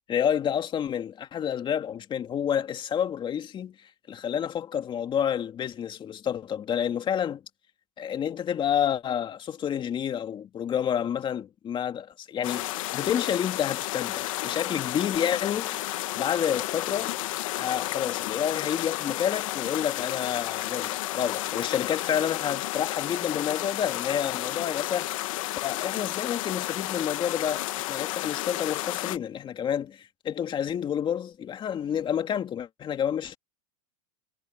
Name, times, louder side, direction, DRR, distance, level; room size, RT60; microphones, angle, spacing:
voice 1, 0.1-3.7 4.1-7.4 8.0-15.8 16.2-17.2 17.6-25.1 25.6-33.4, left 9 dB, 30° left, 2.4 m, -29 dB
sound 1, 12.4-29.2, left 17 dB, 75° left, 1.9 m, -32 dB
supercardioid pair, 125°, 17 cm